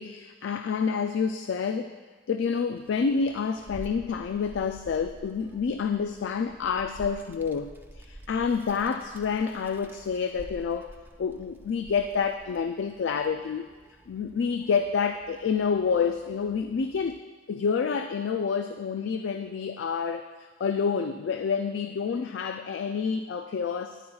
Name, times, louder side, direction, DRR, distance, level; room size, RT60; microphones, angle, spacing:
voice 1, 0.0-1.9 2.3-13.7 14.1-17.2 17.5-24.0, left 6 dB, 90° left, 7 dB, 0.3 m, -28 dB
Child speech kid speaking, 2.8-17.2, right 1 dB, 10° right, 0.5 m, -49 dB
13.5 x 10.0 x 2.3 m, 1.4 s
head